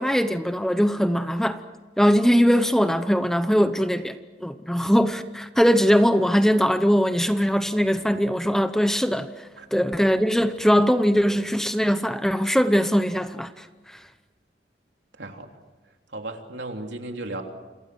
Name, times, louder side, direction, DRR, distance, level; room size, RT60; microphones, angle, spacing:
voice 1, 0.0-1.6 2.0-9.3 9.7-13.7, equal, 5° left, 0.8 m, -21 dB
voice 2, 16.1-17.4, right 2 dB, 70° right, 3.2 m, -35 dB
29.0 x 27.0 x 6.2 m
head